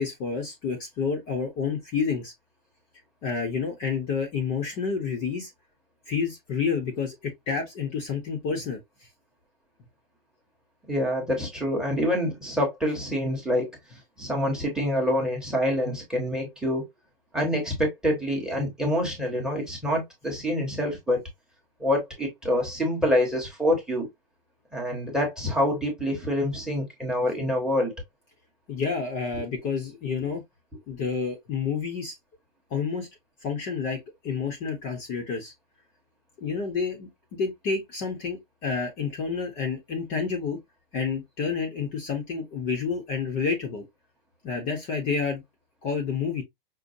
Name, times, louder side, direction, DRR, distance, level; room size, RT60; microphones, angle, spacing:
voice 1, 0.0-2.3 3.2-5.5 6.1-8.8 28.7-30.4 30.9-32.2 32.7-33.1 33.4-35.5 36.4-40.6 40.9-43.8 44.4-45.4 45.8-46.4, left 5 dB, 25° left, 0.8 m, -29 dB
voice 2, 10.9-13.7 14.2-16.8 17.3-21.2 21.8-24.1 24.7-27.9, left 1 dB, ahead, 1.0 m, -26 dB
5.3 x 2.1 x 2.6 m
hypercardioid pair, 150°, 30 cm